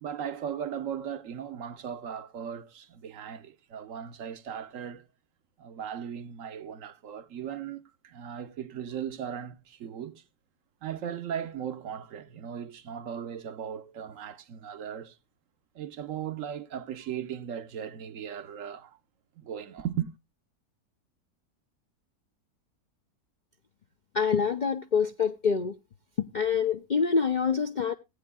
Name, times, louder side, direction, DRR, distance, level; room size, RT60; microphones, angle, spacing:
voice 1, 0.0-5.1 5.6-10.2 10.8-15.2 15.7-19.0 19.4-20.1, right 8 dB, 60° right, 1.1 m, -37 dB
voice 2, 24.1-25.8 26.2-27.9, left 6 dB, 65° left, 0.4 m, -26 dB
18.0 x 9.0 x 2.2 m
omnidirectional pair, 1.6 m